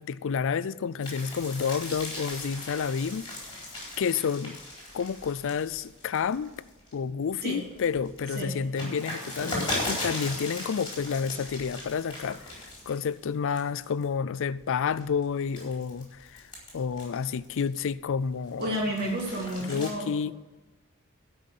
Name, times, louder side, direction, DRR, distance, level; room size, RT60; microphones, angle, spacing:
voice 1, 0.0-3.3 4.0-4.6 4.9-6.5 6.9-12.5 12.9-16.4 16.7-18.9 19.6-20.3, left 6 dB, 60° left, 0.4 m, -30 dB
sound 1, 1.0-6.9 7.4-13.2 13.6-14.0 14.6-17.9 18.3-19.9, left 1 dB, 20° left, 4.3 m, -38 dB
voice 2, 18.6-20.1, right 1 dB, 45° right, 3.2 m, -31 dB
12.0 x 5.7 x 8.3 m
head